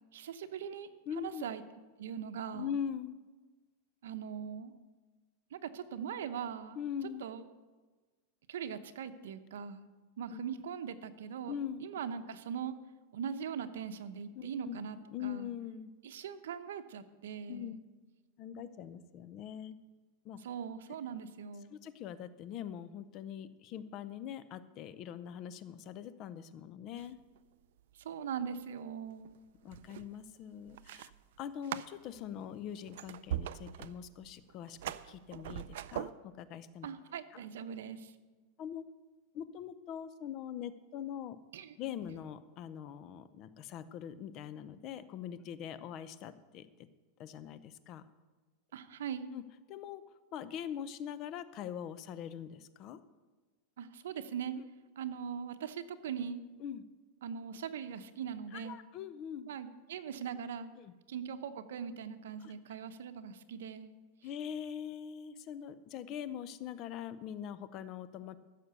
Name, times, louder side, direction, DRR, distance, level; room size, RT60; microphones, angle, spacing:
voice 1, 0.1-0.9 1.1-1.6 2.0-2.7 4.0-4.7 5.5-6.8 7.2-7.5 8.5-9.9 10.2-11.6 11.8-12.8 13.1-15.0 15.2-15.5 16.0-17.8 20.4-21.7 27.9-29.3 36.8-38.1 41.5-41.7 48.7-49.3 53.8-54.6 55.0-56.4 57.2-58.8 59.5-60.7 61.1-63.9, right 7 dB, 85° right, 10 dB, 0.9 m, -41 dB
voice 2, 1.1-1.4 2.5-3.2 6.7-7.2 10.3-10.4 11.5-11.8 14.4-14.8 15.1-15.9 17.5-17.7 18.4-19.8 20.2-20.4 21.7-27.2 29.6-31.1 31.4-34.8 35.0-36.9 38.6-38.8 39.3-41.4 41.8-46.7 47.2-48.0 49.3-49.4 49.7-50.0 50.3-53.0 54.6-54.7 56.6-56.8 58.5-59.5 60.8-60.9 62.4-62.5 64.2-68.4, left 9 dB, 35° left, 14 dB, 0.7 m, -42 dB
sound 1, 27.0-27.4 27.6-28.0 28.8-36.1, right 12 dB, 70° right, 0.4 m, -42 dB
14.5 x 6.7 x 6.8 m, 1.3 s
supercardioid pair, 155°, 0 cm